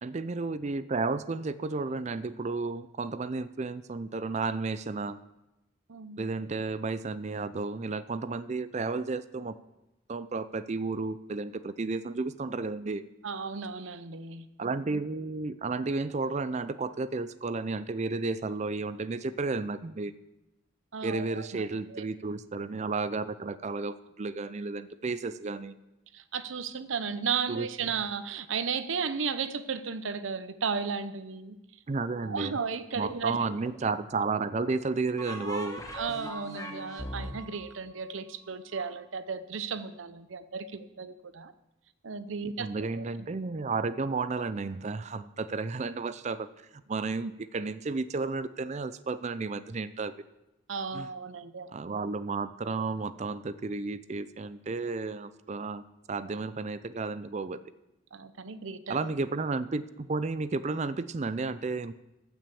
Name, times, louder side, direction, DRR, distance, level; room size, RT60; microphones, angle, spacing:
voice 1, 0.0-5.2 6.2-9.5 10.1-13.0 14.6-20.1 21.0-25.7 27.5-27.7 31.9-32.6 32.9-35.8 42.6-46.5 46.9-50.1 50.9-51.1 51.7-55.8 56.1-57.6 58.9-61.9, right 3 dB, 35° right, 14 dB, 0.4 m, -32 dB
voice 2, 5.9-6.2 13.2-14.5 20.9-22.0 26.1-31.6 32.2-33.4 35.9-41.5 42.0-43.0 50.7-51.7 58.1-59.0, right 5 dB, 70° right, 12 dB, 0.7 m, -34 dB
sound 1, 33.1-33.9 35.2-38.8, equal, 15° left, 1.3 m, -41 dB
15.0 x 6.1 x 7.0 m, 0.95 s
head